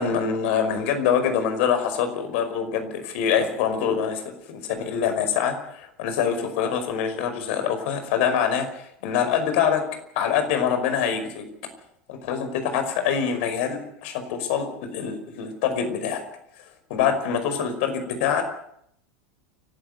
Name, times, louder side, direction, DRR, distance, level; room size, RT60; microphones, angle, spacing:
voice 1, 0.0-9.8 10.2-11.5 12.1-16.2 16.6-18.4, left 7 dB, 65° left, 7 dB, 5.4 m, -25 dB
29.5 x 13.0 x 8.1 m, 0.71 s
hypercardioid pair, 95°, 7 cm